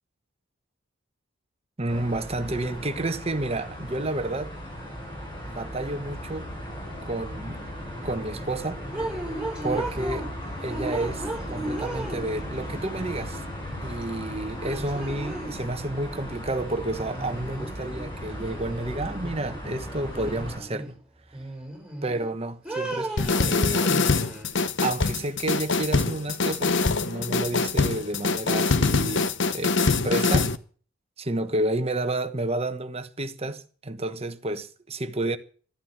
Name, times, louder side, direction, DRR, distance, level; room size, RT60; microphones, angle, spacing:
voice 1, 1.8-4.5 5.5-6.5 7.0-7.6 8.0-8.8 9.6-10.3 10.6-13.4 13.8-20.9 22.0-23.9 24.8-30.5 31.2-35.4, right 2 dB, 30° right, 1.2 m, -30 dB
sound 1, 1.9-20.6, equal, 25° left, 6.5 m, -37 dB
sound 2, 8.9-10.3 10.7-12.6 14.0-14.1 14.6-15.7 17.0-18.0 18.4-19.6 20.1-20.9 21.3-22.3 22.6-24.5, right 2 dB, 5° right, 5.8 m, -35 dB
sound 3, 23.2-30.6, left 3 dB, 60° left, 0.9 m, -24 dB
13.0 x 12.5 x 7.5 m
head